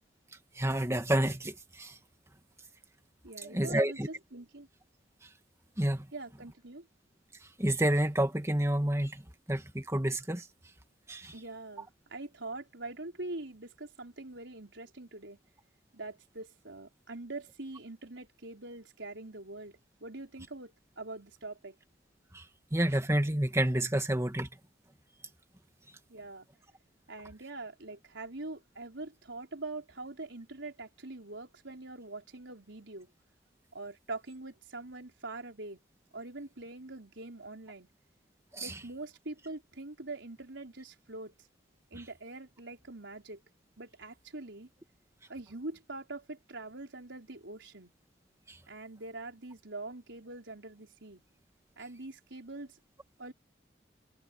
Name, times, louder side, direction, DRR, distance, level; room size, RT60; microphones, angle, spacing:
voice 1, 0.6-1.9 3.4-4.1 5.8-6.1 7.6-9.2 9.5-10.4 11.1-11.3 22.3-22.4 22.7-24.5 38.5-38.7, right 1 dB, 15° right, 2.2 m, -29 dB
voice 2, 3.2-4.7 6.1-6.9 11.3-15.4 15.9-21.7 26.1-26.5 27.1-33.1 33.7-35.8 36.1-37.9 38.6-41.3 41.9-43.4 43.8-44.7 45.3-47.9 48.7-51.2 51.8-52.8 53.2-53.3, right 2 dB, 85° right, 4.4 m, -44 dB
head